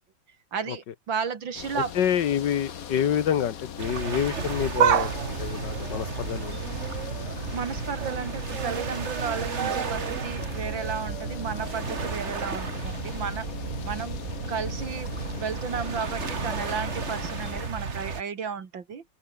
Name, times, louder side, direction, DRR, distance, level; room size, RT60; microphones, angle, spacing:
voice 1, 0.5-1.9 7.5-13.5 13.8-14.2 14.5-15.1 15.4-19.0, right 6 dB, 85° right, 3.0 m, -33 dB
sound 1, 1.5-17.7, left 8 dB, 55° left, 1.5 m, -40 dB
voice 2, 2.0-6.6, left 9 dB, 70° left, 1.8 m, -27 dB
sound 2, 3.8-18.2, right 5 dB, 40° right, 2.1 m, -34 dB
sound 3, 4.8-7.4 7.8-8.2 8.5-12.5 12.8-12.9 13.9-14.0, right 10 dB, 55° right, 0.9 m, -31 dB
open air
omnidirectional pair, 2.0 m